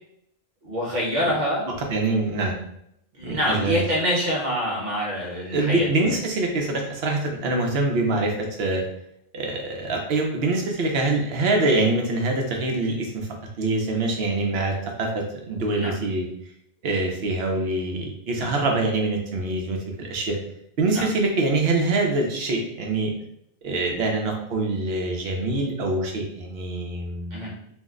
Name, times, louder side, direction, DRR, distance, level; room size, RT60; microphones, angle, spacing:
voice 1, 0.6-1.7 3.1-6.1 15.8-15.9 18.4-18.5 20.9-21.0 27.3-27.5, equal, 50° right, -3 dB, 1.0 m, -26 dB
voice 2, 1.7-2.6 3.2-3.8 5.5-8.8 9.3-13.3 13.6-16.3 16.8-20.4 20.8-23.1 23.6-27.4, right 2 dB, 75° right, 2 dB, 0.9 m, -24 dB
2.6 x 2.1 x 3.6 m, 0.75 s
omnidirectional pair, 1.0 m